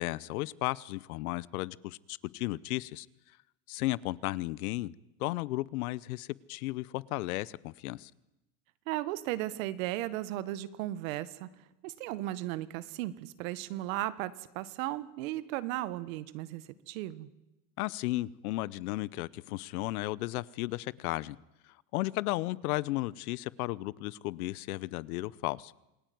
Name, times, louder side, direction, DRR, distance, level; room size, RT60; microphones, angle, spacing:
voice 1, 0.0-3.1 3.7-4.9 5.2-8.1 17.8-21.4 21.9-25.7, left 18 dB, 65° left, 21 dB, 1.0 m, -34 dB
voice 2, 8.9-11.5 11.8-17.3, right 15 dB, 60° right, 15 dB, 1.7 m, -36 dB
28.0 x 20.0 x 9.4 m, 0.94 s
supercardioid pair, 170°, 46 cm